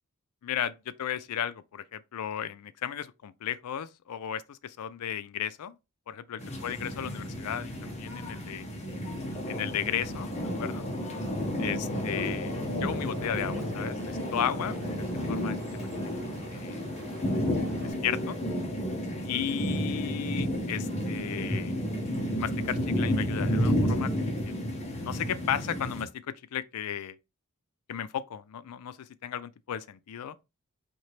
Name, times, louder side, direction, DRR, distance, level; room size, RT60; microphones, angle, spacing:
voice 1, 0.4-5.8 6.1-8.7 9.5-10.9 11.6-12.5 12.8-16.1 16.5-16.8 17.8-18.4 19.3-21.8 22.4-24.6 25.0-27.2 27.9-30.4, left 9 dB, 85° left, 0.4 m, -35 dB
sound 1, 6.4-26.1, equal, 30° left, 0.9 m, -31 dB
Liquid, 12.9-17.9, right 2 dB, 45° right, 1.0 m, -48 dB
4.3 x 2.8 x 3.2 m
head